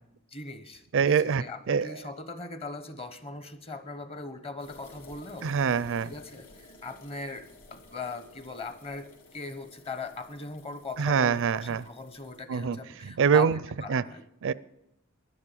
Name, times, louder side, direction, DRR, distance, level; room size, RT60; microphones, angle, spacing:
voice 1, 0.3-5.5 6.0-13.5 13.8-14.2, left 3 dB, 25° left, 11 dB, 1.0 m, -40 dB
voice 2, 0.9-2.0 5.4-6.1 11.0-11.8 12.5-13.6 13.9-14.0 14.4-14.5, right 6 dB, 60° right, 18 dB, 0.4 m, -25 dB
sound 1, 4.6-12.4, left 2 dB, 65° left, 3.4 m, -54 dB
12.0 x 11.0 x 8.4 m, 0.84 s
head